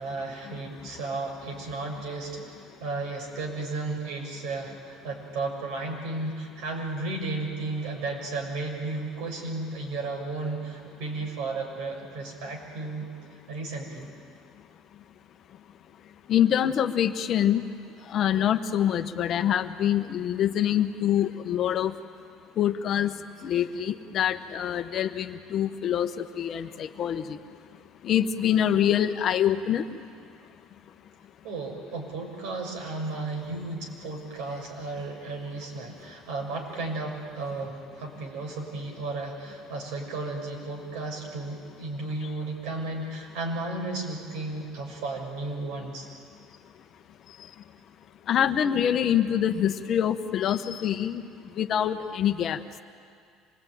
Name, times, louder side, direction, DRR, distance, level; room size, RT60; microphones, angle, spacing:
voice 1, 0.0-13.0 13.5-14.1 31.4-46.1, right 3 dB, 80° right, 1 dB, 6.4 m, -34 dB
voice 2, 16.3-17.6 18.1-21.9 22.6-23.1 23.4-27.4 28.0-29.8 48.3-51.2 51.6-52.6, left 10 dB, 45° left, 9 dB, 1.1 m, -25 dB
26.0 x 20.5 x 9.3 m, 2.3 s
cardioid pair, 135°, 0 cm